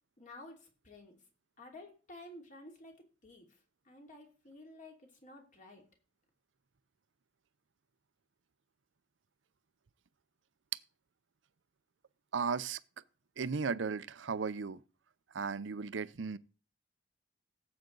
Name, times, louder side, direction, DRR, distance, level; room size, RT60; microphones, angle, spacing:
voice 1, 0.2-1.2 1.6-2.9 3.2-3.4 3.8-5.8, left 2 dB, 45° left, 2.9 m, -52 dB
voice 2, 12.3-12.8 13.4-14.8 15.3-16.4, right 5 dB, 80° right, 0.6 m, -35 dB
17.0 x 7.9 x 3.9 m
head